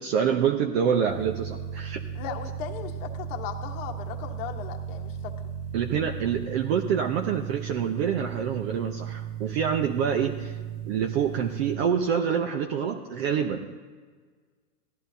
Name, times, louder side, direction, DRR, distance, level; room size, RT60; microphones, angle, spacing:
voice 1, 0.0-2.0 5.7-10.6 10.9-13.7, right 7 dB, 45° right, 4 dB, 0.8 m, -26 dB
sound 1, 1.1-11.7, right 8 dB, 75° right, 1.8 m, -36 dB
voice 2, 2.1-5.3, left 8 dB, 40° left, 3 dB, 1.2 m, -37 dB
17.5 x 11.0 x 2.8 m, 1.5 s
hypercardioid pair, 140°, 46 cm